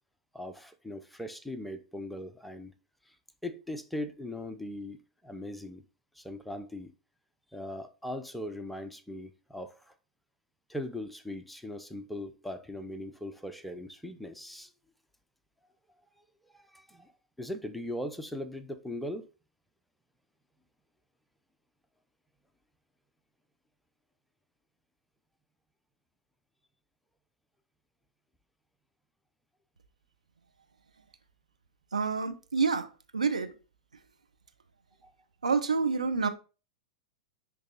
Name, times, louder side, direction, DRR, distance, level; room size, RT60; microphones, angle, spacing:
voice 1, 0.3-2.7 3.1-3.2 3.4-5.0 5.2-5.9 6.1-6.9 7.5-9.9 10.7-14.7 16.5-17.1 17.4-19.3 35.0-35.1, left 1 dB, ahead, 0.7 m, -39 dB
voice 2, 31.9-33.5 35.4-36.3, right 5 dB, 80° right, 0.9 m, -28 dB
10.0 x 3.5 x 4.0 m
figure-of-eight pair, 100°, 4 cm